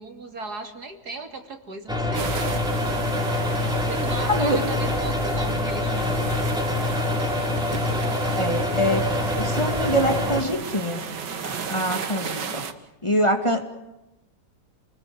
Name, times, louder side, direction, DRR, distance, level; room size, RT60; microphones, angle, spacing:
voice 1, 0.0-2.3 3.9-6.4, right 3 dB, 65° right, 5 dB, 3.3 m, -36 dB
sound 1, 1.9-10.4, left 2 dB, ahead, 3.8 m, -25 dB
sound 2, 2.1-12.7, right 6 dB, 80° right, 2.3 m, -34 dB
voice 2, 4.3-4.6 8.4-9.1 9.3-11.0 11.4-12.6 13.0-13.6, equal, 15° left, 4 dB, 2.5 m, -24 dB
29.0 x 21.0 x 8.0 m, 0.95 s
omnidirectional pair, 1.9 m